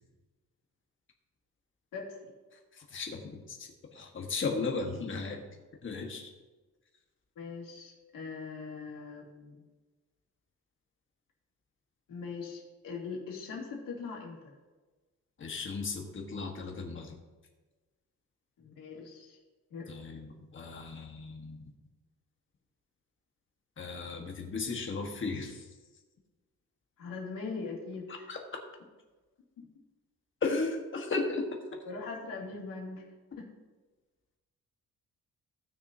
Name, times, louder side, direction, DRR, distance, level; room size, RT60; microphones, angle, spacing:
voice 1, 1.9-2.3 7.4-9.6 12.1-14.5 18.6-19.4 19.7-20.1 27.0-28.3 29.6-29.7 31.9-33.0 33.3-33.5, left 4 dB, 85° left, -3 dB, 2.7 m, -41 dB
voice 2, 2.7-5.4 5.8-6.3 15.4-17.2 19.9-21.6 23.8-25.7 28.3-28.4 30.4-31.6, left 3 dB, 40° left, 2 dB, 1.4 m, -35 dB
17.5 x 6.4 x 2.8 m, 1.3 s
wide cardioid pair, 175°, 32 cm